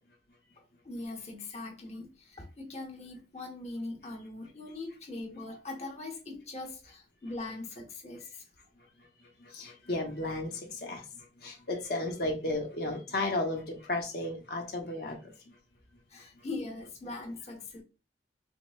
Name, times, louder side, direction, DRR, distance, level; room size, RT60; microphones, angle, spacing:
voice 1, 0.6-8.5 16.1-17.8, left 2 dB, 35° left, 0.9 m, -41 dB
voice 2, 9.4-11.0 11.4-15.2, left 2 dB, 60° left, 1.1 m, -33 dB
5.8 x 2.1 x 2.5 m
head